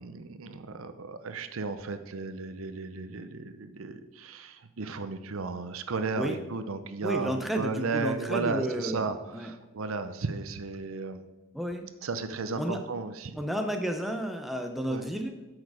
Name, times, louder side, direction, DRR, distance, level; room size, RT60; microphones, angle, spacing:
voice 1, 0.0-11.3 12.0-13.4 14.9-15.1, right 4 dB, 80° right, 10 dB, 0.7 m, -34 dB
voice 2, 7.0-9.1 9.3-9.5 11.5-11.8 12.6-12.8 13.4-15.4, right 1 dB, ahead, 4 dB, 0.7 m, -31 dB
8.5 x 6.5 x 4.8 m, 1.1 s
head